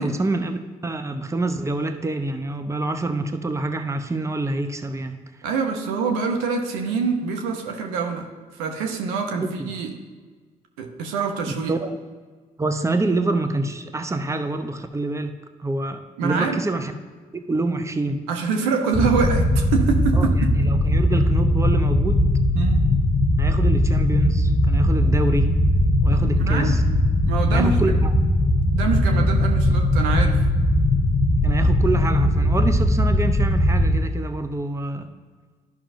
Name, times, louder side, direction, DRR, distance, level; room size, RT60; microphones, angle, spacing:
voice 1, 0.0-5.2 9.4-9.7 11.7-11.9 12.6-15.3 15.6-16.9 17.3-18.2 20.1-22.3 23.4-25.5 26.0-26.8 27.5-28.1 31.4-35.1, right 2 dB, 20° right, 8 dB, 0.7 m, -26 dB
voice 2, 5.4-9.9 10.8-11.7 16.2-16.7 18.3-20.6 22.5-22.9 26.1-26.8 27.2-27.9 28.7-30.4, right 5 dB, 90° right, 4 dB, 0.7 m, -25 dB
sound 1, 18.9-34.0, left 1 dB, 50° left, 0.8 m, -19 dB
11.5 x 5.8 x 2.6 m, 1.4 s
hypercardioid pair, 45°, 16 cm